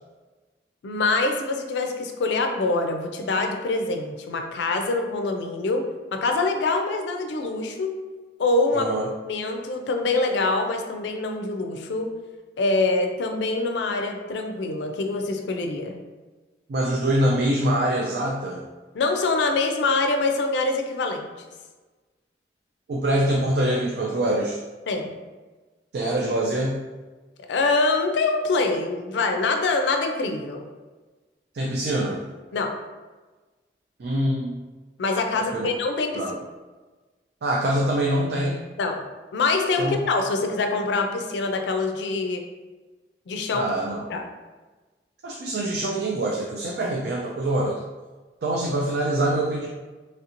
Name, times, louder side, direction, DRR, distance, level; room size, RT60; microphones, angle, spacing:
voice 1, 0.8-5.8 6.1-7.9 8.4-8.9 9.2-12.1 12.6-16.0 18.9-21.3 24.9-25.2 27.5-30.7 32.5-32.7 35.0-36.3 38.8-39.0 39.3-42.4 43.3-43.7 44.1-44.2, left 3 dB, 85° left, 4 dB, 0.4 m, -24 dB
voice 2, 8.7-9.0 16.7-18.6 22.9-24.6 25.9-26.8 31.5-32.2 34.0-34.6 35.3-35.7 36.1-36.3 37.4-38.6 39.8-40.0 43.5-44.0 45.2-47.8 48.4-49.7, right 1 dB, 65° right, -2 dB, 0.4 m, -24 dB
3.2 x 2.5 x 2.8 m, 1.3 s
head